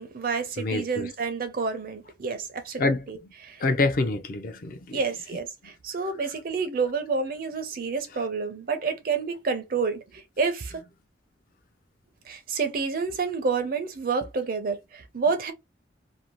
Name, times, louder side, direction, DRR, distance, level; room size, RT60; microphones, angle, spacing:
voice 1, 0.0-3.2 3.4-3.6 4.9-10.7 12.3-15.5, right 5 dB, 50° right, 0.5 m, -29 dB
voice 2, 0.6-1.1 2.8-3.1 3.6-5.0 5.6-5.7, left 3 dB, 50° left, 0.4 m, -26 dB
2.7 x 2.1 x 2.9 m
head